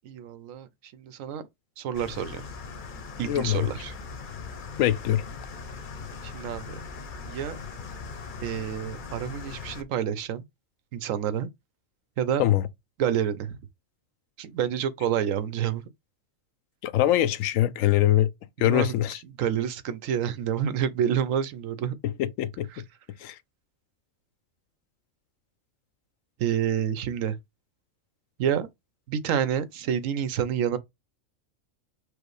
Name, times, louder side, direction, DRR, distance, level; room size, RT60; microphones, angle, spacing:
voice 1, 0.1-1.4 1.8-2.4 3.2-3.9 6.2-6.7 7.2-7.6 8.4-10.4 10.9-11.5 12.2-12.5 13.0-13.6 14.4-15.8 18.6-18.9 19.4-22.0 26.4-27.4 28.4-28.7 29.1-30.8, right 9 dB, 85° right, 1.0 m, -28 dB
sound 1, 1.9-9.8, left 4 dB, 50° left, 0.7 m, -40 dB
voice 2, 3.3-3.7 4.8-5.2 12.4-12.6 16.8-18.3 18.6-19.2 22.0-22.8 23.2-23.4, left 13 dB, 85° left, 1.0 m, -23 dB
5.0 x 2.0 x 4.7 m
omnidirectional pair, 1.3 m